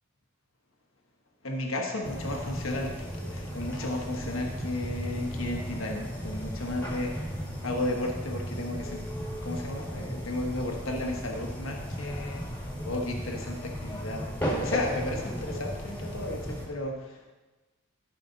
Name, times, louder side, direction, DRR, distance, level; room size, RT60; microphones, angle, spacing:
voice 1, 1.4-7.4 7.6-9.0 9.4-14.3 14.6-17.3, left 1 dB, 85° left, 1 dB, 1.3 m, -34 dB
sound 1, 2.0-16.7, equal, 10° left, 2.0 m, -35 dB
14.0 x 5.8 x 4.0 m, 1.2 s
head